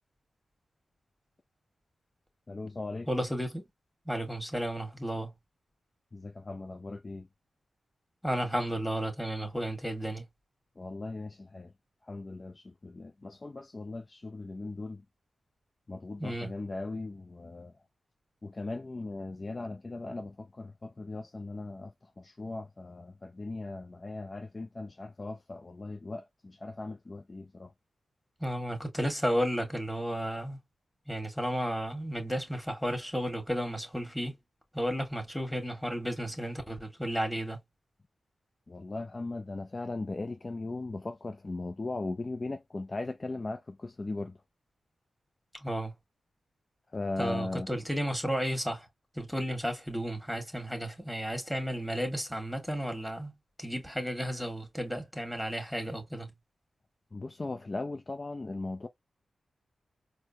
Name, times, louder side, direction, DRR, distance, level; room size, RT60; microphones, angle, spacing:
voice 1, 2.5-3.1 6.1-7.3 10.8-11.7 12.1-15.0 15.9-17.7 18.4-27.7 38.7-44.4 46.9-47.7 57.1-58.9, left 2 dB, 40° left, 0.4 m, -38 dB
voice 2, 3.1-3.6 4.1-5.3 8.2-10.2 16.2-16.5 28.4-30.6 31.1-34.3 34.7-37.6 45.5-45.9 47.2-48.9 49.2-53.3 53.6-56.3, equal, 5° left, 1.7 m, -33 dB
4.3 x 2.1 x 2.8 m
cardioid pair, 45°, 0 cm